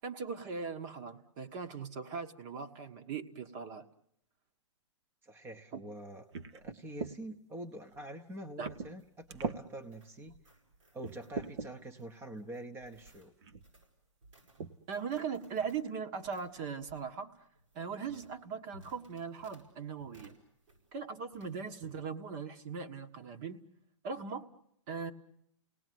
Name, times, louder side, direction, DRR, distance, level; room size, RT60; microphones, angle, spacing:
voice 1, 0.0-3.8 5.7-5.8 8.6-8.7 14.9-17.4 17.7-20.4 20.9-23.6 24.0-24.5 24.9-25.1, right 6 dB, 40° right, 6 dB, 1.5 m, -39 dB
voice 2, 5.2-6.2 6.5-10.4 10.9-13.3, right 1 dB, 15° right, 6 dB, 1.0 m, -45 dB
sound 1, 6.3-7.2 7.9-8.0 8.6-9.0 9.3-9.6 10.3-10.4 11.0-11.7 12.8-12.9 13.4-13.7 14.6-14.8 15.1-15.2 15.6-15.9, right 5 dB, 60° right, 1.2 m, -40 dB
sound 2, 8.6-21.0 21.3-22.0, right 2 dB, 85° right, 7.9 m, -62 dB
29.0 x 18.5 x 9.4 m, 0.77 s
hypercardioid pair, 140°, 16 cm